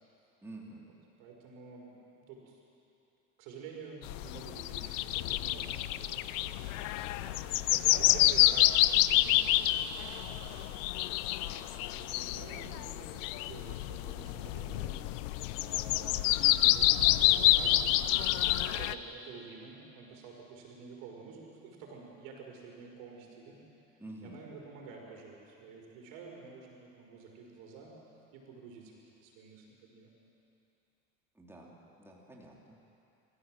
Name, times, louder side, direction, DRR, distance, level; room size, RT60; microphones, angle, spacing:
voice 1, 0.4-0.8 7.1-7.8 24.0-24.4 31.3-31.7 32.0-32.8, right 1 dB, 5° right, -3 dB, 3.8 m, -49 dB
voice 2, 1.2-2.6 3.4-6.7 7.5-9.4 10.0-10.8 11.4-15.0 15.5-23.6 23.9-27.9 28.3-30.1, right 4 dB, 70° right, 0 dB, 5.5 m, -49 dB
sound 1, 4.0-18.9, left 15 dB, 75° left, 0.8 m, -28 dB
25.5 x 14.5 x 7.8 m, 2.7 s
supercardioid pair, 100°, 38 cm